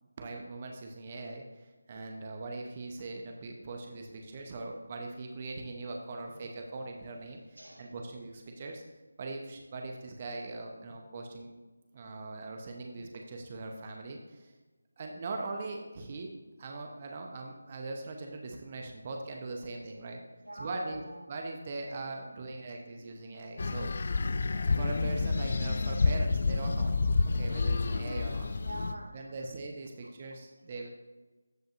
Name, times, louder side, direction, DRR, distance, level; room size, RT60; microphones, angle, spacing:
voice 1, 0.0-8.8 9.2-11.5 11.9-14.5 15.0-16.3 16.6-20.2 20.5-23.9 24.2-24.3 24.7-26.9 27.2-28.5 29.1-30.9, right 3 dB, 30° right, 2 dB, 0.8 m, -41 dB
voice 2, 7.5-7.9 12.9-13.0 20.4-21.2 23.1-23.2 28.6-29.3 30.0-30.4, right 1 dB, 85° right, 3 dB, 1.6 m, -45 dB
sound 1, 23.6-28.9, left 3 dB, 45° left, 0.4 m, -29 dB
14.0 x 5.2 x 2.5 m, 1.2 s
figure-of-eight pair, 160°, 0 cm